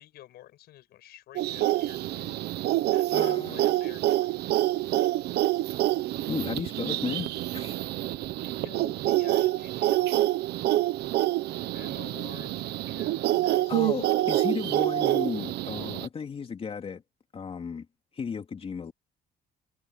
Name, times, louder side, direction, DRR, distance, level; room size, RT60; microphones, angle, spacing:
voice 1, 0.0-2.4 2.9-4.3 8.2-10.5 11.7-14.4, left 14 dB, 75° left, 6.6 m, -50 dB
sound 1, 1.3-16.1, right 15 dB, 75° right, 1.1 m, -27 dB
voice 2, 3.1-3.7 6.3-7.8 13.7-17.0 17.3-17.8 18.2-18.9, left 6 dB, 35° left, 2.9 m, -34 dB
cardioid pair, 110°, 17 cm